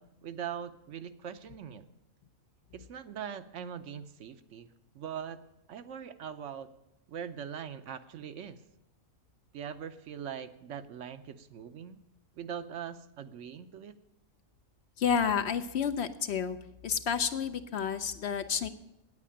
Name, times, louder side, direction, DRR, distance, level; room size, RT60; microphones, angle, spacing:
voice 1, 0.0-1.9 2.7-5.4 5.7-6.7 7.1-8.6 9.5-12.0 12.4-14.0, right 8 dB, 70° right, 11 dB, 1.0 m, -41 dB
voice 2, 15.0-16.6 16.8-18.7, left 7 dB, 60° left, 10 dB, 0.8 m, -30 dB
9.2 x 8.5 x 8.5 m, 0.91 s
omnidirectional pair, 1.4 m